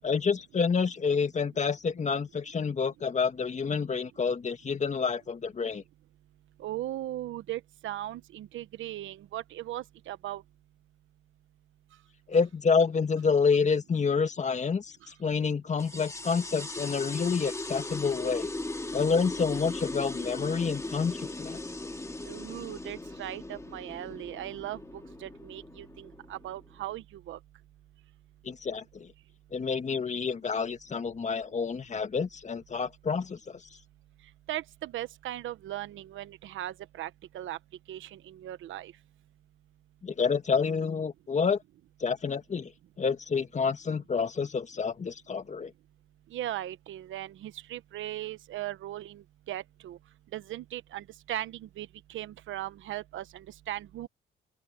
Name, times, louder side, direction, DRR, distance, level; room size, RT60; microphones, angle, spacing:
voice 1, 0.0-5.8 12.3-18.5 18.9-21.6 28.4-29.1 29.5-33.6 40.0-41.6 42.0-42.7 43.0-45.7, left 5 dB, 35° left, 1.9 m, -28 dB
voice 2, 6.6-10.4 22.2-27.4 34.5-37.6 37.9-38.9 46.3-50.0 50.3-54.1, right 13 dB, 80° right, 1.1 m, -38 dB
sound 1, 15.8-26.8, left 2 dB, 15° left, 2.3 m, -38 dB
open air
cardioid pair, 90°, 20 cm